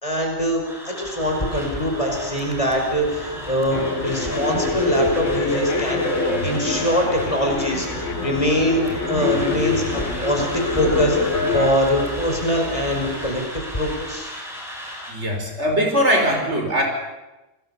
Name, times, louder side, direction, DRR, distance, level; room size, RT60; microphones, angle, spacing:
voice 1, 0.0-6.0 6.4-7.9 8.2-8.8 9.1-14.3, equal, 25° left, 1 dB, 5.4 m, -23 dB
sound 1, 0.6-15.1, equal, ahead, 6.8 m, -36 dB
sound 2, 1.2-13.4, equal, 35° right, 4.0 m, -33 dB
sound 3, 3.7-11.7, left 3 dB, 80° left, 2.2 m, -25 dB
voice 2, 15.1-16.8, equal, 65° right, 2 dB, 5.3 m, -20 dB
28.5 x 20.0 x 7.1 m, 1.1 s
omnidirectional pair, 1.3 m